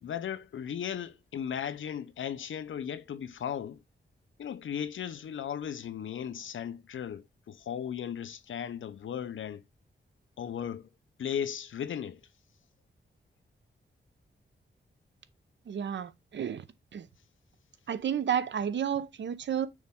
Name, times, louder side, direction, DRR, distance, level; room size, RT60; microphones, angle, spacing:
voice 1, 0.0-3.8 4.4-9.6 10.4-10.9 11.2-12.2, left 8 dB, 85° left, 0.7 m, -36 dB
voice 2, 15.7-16.6 16.9-17.1 17.9-19.7, right 8 dB, 70° right, 0.7 m, -31 dB
6.3 x 4.2 x 3.6 m
wide cardioid pair, 130°, 20 cm